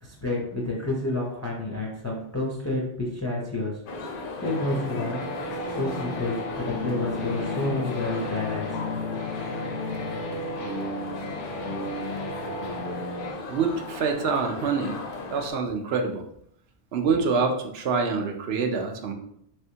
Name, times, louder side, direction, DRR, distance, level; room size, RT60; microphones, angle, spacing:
voice 1, 0.0-3.8 4.4-5.2 5.7-8.7, left 2 dB, 20° left, -3 dB, 0.5 m, -29 dB
sound 1, 3.9-15.5, left 3 dB, 60° left, 0.7 m, -37 dB
sound 2, 4.4-13.3, left 1 dB, 85° left, 1.1 m, -33 dB
voice 2, 13.5-15.0 15.3-16.2 16.9-19.1, right 5 dB, 65° right, 4 dB, 0.8 m, -26 dB
3.4 x 3.3 x 2.8 m, 0.73 s
omnidirectional pair, 1.2 m